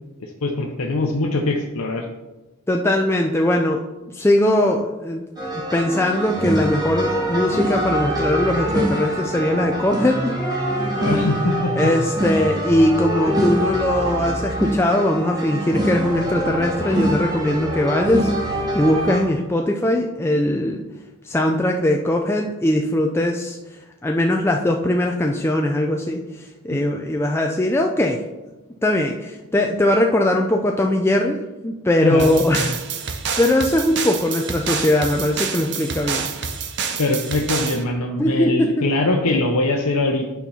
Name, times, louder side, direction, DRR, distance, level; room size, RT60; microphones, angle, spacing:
voice 1, 0.2-2.1 11.0-11.9 26.7-26.8 32.0-32.3 37.0-40.2, left 2 dB, 75° left, 1 dB, 0.8 m, -22 dB
voice 2, 2.7-3.8 4.1-5.2 5.5-10.3 11.8-20.8 21.2-23.6 24.0-28.2 28.8-31.4 31.6-36.3 38.2-38.8, left 1 dB, 10° left, 2 dB, 0.4 m, -20 dB
sound 1, 5.4-19.2, right 1 dB, 20° right, 1.6 m, -24 dB
sound 2, 32.2-37.8, right 6 dB, 55° right, 0.8 m, -28 dB
9.3 x 4.5 x 5.6 m, 1.1 s
head